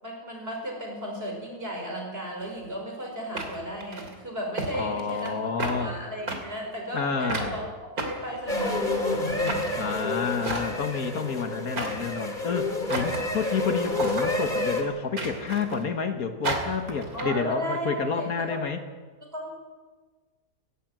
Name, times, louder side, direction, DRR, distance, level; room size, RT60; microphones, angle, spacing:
voice 1, 0.0-5.4 5.6-9.4 9.8-10.0 17.1-18.6 19.3-19.5, equal, 35° right, 0 dB, 5.8 m, -35 dB
sound 1, 2.4-2.5 3.4-4.1 4.6-4.7 5.0-5.3 5.6-5.8 6.3-6.4 7.3-7.5 8.0-8.8 9.4-9.7 10.4-10.9 11.8-12.1 12.9-13.3 13.9-14.3 15.2-15.8 16.4-17.2, right 2 dB, 65° right, 3.4 m, -32 dB
voice 2, 4.7-6.0 6.9-7.6 9.8-18.8, left 5 dB, 65° left, 7 dB, 1.8 m, -29 dB
sound 2, 8.5-14.8, left 2 dB, 30° left, 2.5 m, -29 dB
17.5 x 16.5 x 9.2 m, 1.4 s
omnidirectional pair, 1.7 m